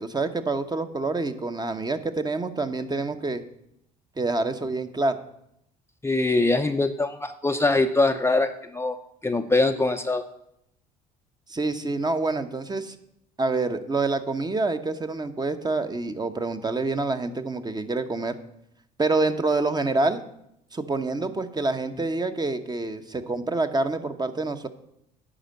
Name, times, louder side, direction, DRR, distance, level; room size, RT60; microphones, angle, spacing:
voice 1, 0.0-3.4 4.2-5.2 11.5-12.9 13.4-18.4 19.0-20.2 20.7-24.7, right 3 dB, 20° right, 9 dB, 0.9 m, -27 dB
voice 2, 6.0-9.0 9.2-10.2, left 2 dB, 15° left, 6 dB, 0.6 m, -23 dB
9.9 x 5.1 x 7.7 m, 0.78 s
hypercardioid pair, 65°, 20 cm